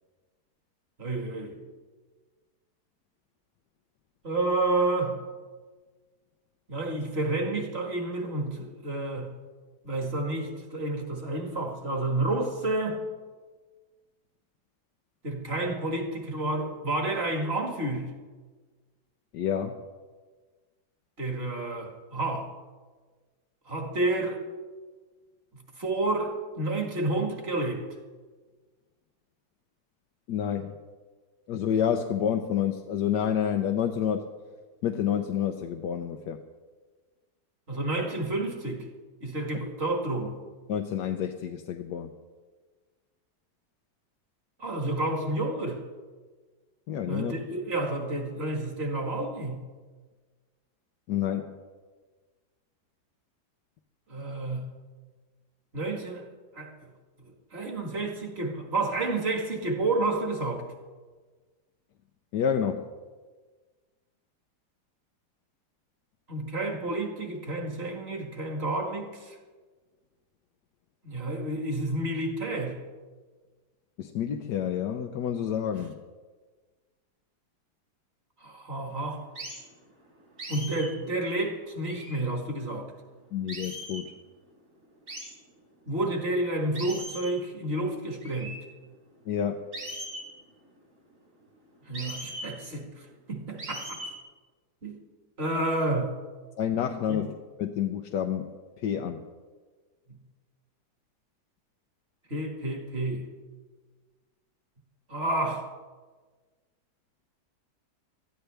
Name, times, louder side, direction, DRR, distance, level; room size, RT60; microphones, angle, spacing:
voice 1, 1.0-1.6 4.2-5.2 6.7-9.3 9.8-13.0 15.2-18.1 21.2-22.5 23.7-24.4 25.5-27.9 37.7-38.9 39.2-40.4 44.6-45.8 47.1-49.7 54.1-54.7 55.7-56.3 56.5-56.9 57.5-60.6 66.3-69.4 71.0-72.8 75.7-75.9 78.4-79.2 80.5-82.9 85.9-88.6 91.9-94.0 94.8-95.0 95.4-96.1 97.1-97.2 100.1-100.2 102.3-103.3 105.1-105.7, right 2 dB, 40° right, 2 dB, 1.9 m, -30 dB
voice 2, 19.3-19.8 30.3-30.7 31.5-34.2 34.8-36.4 40.7-42.1 46.9-47.3 51.1-51.6 62.3-62.8 74.0-75.9 83.3-84.0 89.3-89.7 96.6-98.5 98.8-99.2, left 9 dB, 90° left, 4 dB, 1.3 m, -29 dB
sound 1, 79.4-79.6 80.4-80.9 81.8-82.3 83.5-84.1 85.1-85.4 86.7-87.4 88.2-88.6 89.7-90.3 91.9-92.5 93.6-94.2, right 1 dB, 60° right, 4.5 m, -39 dB
20.5 x 13.5 x 3.4 m, 1.4 s
omnidirectional pair, 1.8 m